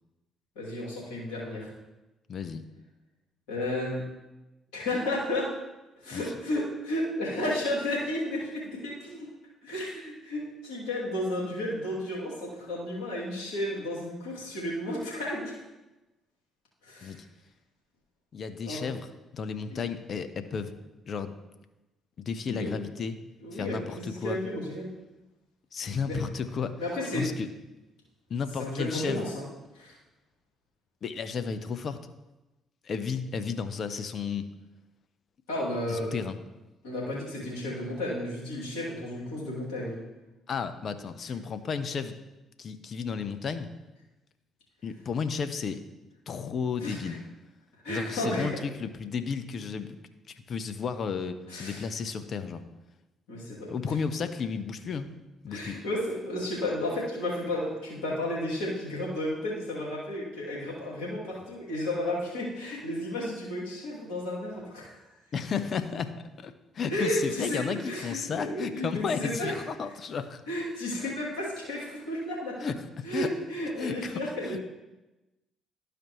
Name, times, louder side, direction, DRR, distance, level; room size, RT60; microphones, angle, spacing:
voice 1, 0.6-1.7 3.5-4.0 4.7-5.5 6.0-9.3 9.6-15.6 16.8-17.2 18.6-18.9 19.7-19.8 22.5-22.7 23.4-24.9 26.1-26.2 26.8-27.3 28.6-29.4 29.7-30.0 35.5-36.2 36.8-40.0 46.8-47.2 47.8-48.6 51.5-51.9 53.3-53.7 55.5-64.9 66.9-69.5 70.5-72.7 73.0-74.6, left 1 dB, 80° left, -6 dB, 2.6 m, -33 dB
voice 2, 2.3-2.6 6.1-6.2 17.0-17.2 18.3-19.1 19.3-20.7 21.1-21.3 22.2-23.2 23.5-24.4 25.7-26.8 27.1-27.5 28.3-29.3 31.0-32.0 32.8-34.5 35.9-36.4 40.5-42.2 42.6-43.7 44.8-45.8 46.3-47.2 47.9-50.0 50.3-52.6 53.7-55.1 55.4-55.8 65.3-70.4 71.0-71.1 72.6-73.3 73.8-74.1 74.4-74.6, left 6 dB, 50° left, 10 dB, 0.7 m, -33 dB
12.0 x 5.0 x 3.1 m, 1.0 s
hypercardioid pair, 50°, 0 cm